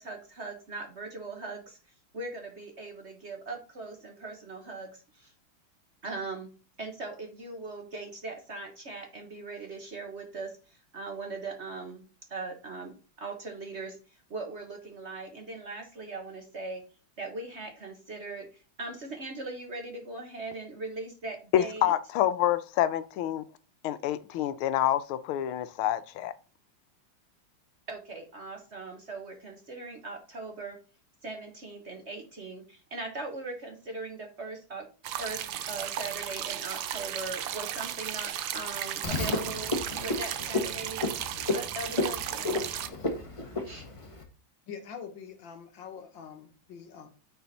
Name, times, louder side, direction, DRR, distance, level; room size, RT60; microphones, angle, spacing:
voice 1, 0.0-1.8 2.1-5.3 6.0-6.5 6.8-12.0 12.3-14.0 14.3-16.8 17.2-21.9 27.9-30.8 31.2-34.9 35.2-39.7 40.0-41.0 41.5-42.5 43.6-43.9, right 3 dB, 45° right, 1.0 m, -40 dB
voice 2, 21.5-23.5 23.8-26.3, left 12 dB, 85° left, 1.5 m, -27 dB
sound 1, 35.0-42.9, right 11 dB, 70° right, 1.3 m, -35 dB
Frog, 39.0-44.2, left 2 dB, 20° left, 0.9 m, -32 dB
voice 3, 44.7-47.1, left 7 dB, 65° left, 1.7 m, -44 dB
9.3 x 4.2 x 4.0 m
omnidirectional pair, 2.3 m